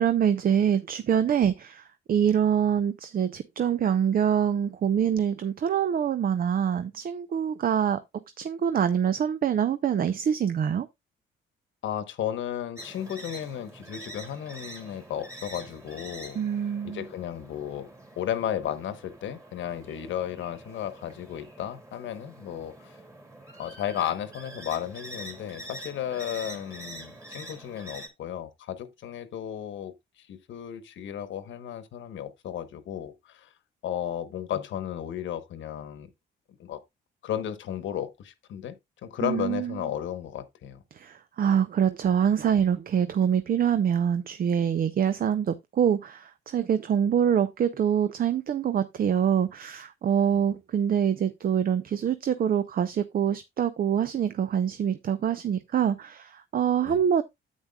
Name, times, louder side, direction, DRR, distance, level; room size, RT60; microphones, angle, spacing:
voice 1, 0.0-8.0 8.4-10.9 16.4-17.1 39.2-39.8 40.9-57.2, right 8 dB, 45° right, 0.6 m, -25 dB
voice 2, 11.8-16.4 16.8-23.0 23.6-33.5 33.8-36.1 36.5-36.8 37.2-38.8 39.0-40.8 50.3-50.4 56.8-57.0, left 10 dB, 70° left, 1.1 m, -34 dB
sound 1, 12.8-28.1, right 1 dB, 15° right, 2.4 m, -45 dB
9.5 x 8.2 x 2.3 m
cardioid pair, 90°, 20 cm